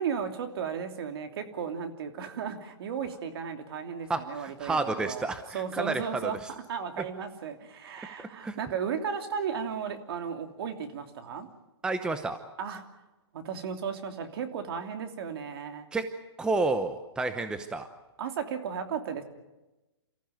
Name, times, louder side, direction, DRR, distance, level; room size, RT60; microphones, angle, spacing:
voice 1, 0.0-5.2 5.5-6.4 6.7-11.5 12.6-12.8 13.3-15.9 18.2-19.2, right 7 dB, 55° right, 6 dB, 3.0 m, -35 dB
voice 2, 4.1-6.5 8.2-8.6 11.8-12.4 15.9-16.0 16.4-17.9, right 3 dB, 5° right, 9 dB, 0.8 m, -30 dB
28.5 x 14.5 x 9.3 m, 1.0 s
hypercardioid pair, 155°, 15 cm